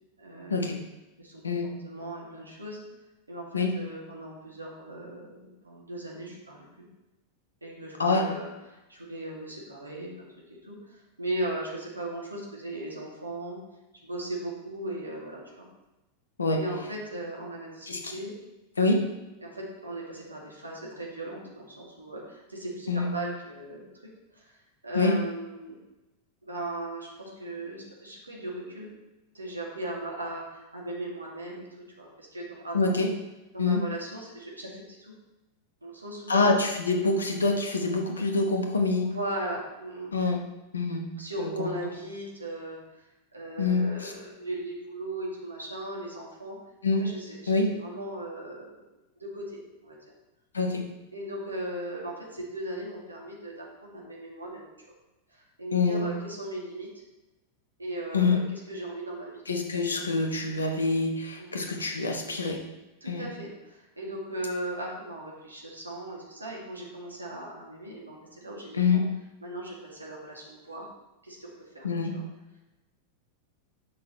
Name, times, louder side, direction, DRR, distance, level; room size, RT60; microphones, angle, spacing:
voice 1, 0.2-0.7 1.2-1.4 1.8-2.8 3.3-6.9 7.6-13.6 14.0-15.7 16.6-18.3 19.4-24.6 24.8-25.8 26.4-28.9 29.3-31.7 32.0-32.9 33.5-35.1 35.8-36.5 38.1-38.2 39.0-40.1 41.2-43.0 43.3-46.6 47.0-47.5 47.8-48.9 49.2-50.0 51.1-54.7 55.3-56.9 57.8-59.4 61.4-61.5 63.0-69.0 69.4-70.9 71.2-71.9 72.1-72.2, right 1 dB, 80° right, -3 dB, 2.2 m, -38 dB
voice 2, 17.9-18.2 18.8-19.0 22.9-23.1 24.9-25.1 32.7-33.1 33.6-33.8 36.3-39.1 40.1-40.4 40.7-41.0 41.4-41.7 43.6-44.1 46.8-47.0 47.5-47.7 50.5-50.8 55.7-56.1 58.1-58.4 59.5-62.6 63.0-63.3 68.7-69.0 71.8-72.1, left 3 dB, 75° left, 3 dB, 1.1 m, -25 dB
11.0 x 6.3 x 3.1 m, 1.0 s
figure-of-eight pair, 90°, 0 cm